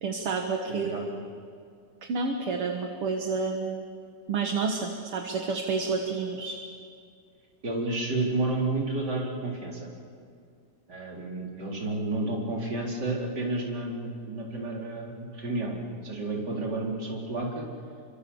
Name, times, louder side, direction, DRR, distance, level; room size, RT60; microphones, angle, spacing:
voice 1, 0.0-1.1 2.1-3.9 4.3-6.6, right 4 dB, 55° right, 3 dB, 2.0 m, -29 dB
voice 2, 0.7-1.0 6.3-6.4 7.6-9.9 10.9-17.7, right 2 dB, 30° right, -2 dB, 4.3 m, -31 dB
30.0 x 24.5 x 7.1 m, 2.3 s
omnidirectional pair, 3.6 m